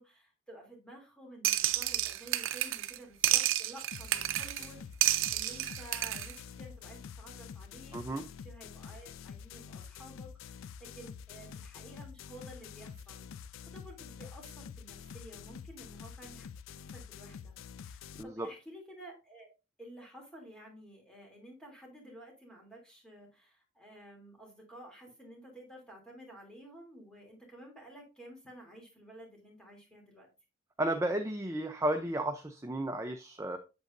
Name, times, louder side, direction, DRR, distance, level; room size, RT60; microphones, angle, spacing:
voice 1, 0.0-16.5 16.9-19.5 19.8-30.3, right 1 dB, 5° left, -1 dB, 3.0 m, -52 dB
sound 1, 1.4-3.0 3.2-4.7 5.0-6.3, right 13 dB, 75° right, 0.6 m, -30 dB
sound 2, 3.9-18.2, left 7 dB, 75° left, 0.4 m, -47 dB
voice 2, 7.9-8.2 18.2-18.5 30.8-33.6, right 1 dB, 15° right, 5 dB, 0.6 m, -33 dB
8.1 x 7.6 x 2.6 m, 0.29 s
head